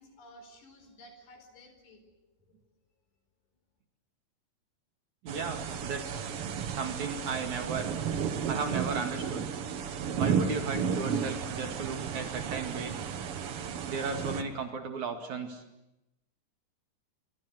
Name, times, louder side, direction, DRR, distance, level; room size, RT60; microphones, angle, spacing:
voice 1, 0.0-2.6, equal, 85° left, 7 dB, 6.6 m, -55 dB
voice 2, 5.2-6.3 6.7-7.9 8.5-9.6 10.2-13.0 13.9-15.6, right 5 dB, 50° right, 6 dB, 3.2 m, -35 dB
sound 1, 5.3-14.4, right 7 dB, 75° right, 1.3 m, -33 dB
25.5 x 24.0 x 7.8 m, 0.91 s
omnidirectional pair, 4.7 m